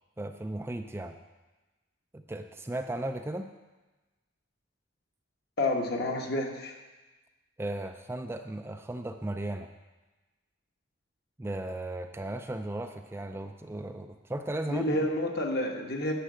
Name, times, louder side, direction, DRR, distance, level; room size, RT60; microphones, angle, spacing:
voice 1, 0.2-1.2 2.1-3.5 7.6-9.7 11.4-15.1, right 1 dB, 10° right, 6 dB, 0.4 m, -36 dB
voice 2, 5.6-6.8 14.7-16.1, left 1 dB, 55° left, 2 dB, 1.3 m, -29 dB
10.0 x 5.9 x 7.7 m, 1.2 s
head